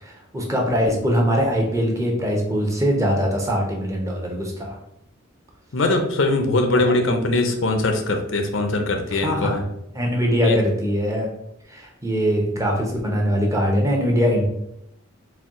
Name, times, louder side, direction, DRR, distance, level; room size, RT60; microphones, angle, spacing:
voice 1, 0.0-4.8 9.1-9.6 9.9-11.3 11.7-14.5, equal, 15° right, 0 dB, 0.6 m, -22 dB
voice 2, 5.7-9.6 10.4-10.6, left 2 dB, 65° left, 5 dB, 0.5 m, -21 dB
4.3 x 2.2 x 3.6 m, 0.79 s
head